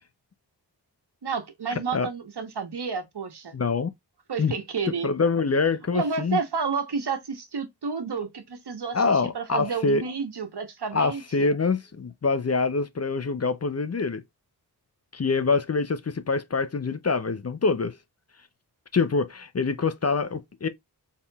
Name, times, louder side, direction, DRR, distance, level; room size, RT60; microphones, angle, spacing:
voice 1, 1.2-3.5 4.3-5.1 5.9-9.0 9.3-11.6, right 5 dB, 70° right, 1.2 m, -30 dB
voice 2, 3.5-3.9 4.4-4.5 5.0-6.4 8.9-10.0 10.9-14.2 15.1-18.0 18.9-20.7, left 4 dB, 40° left, 0.6 m, -25 dB
4.3 x 3.6 x 2.3 m
cardioid pair, 55°, 41 cm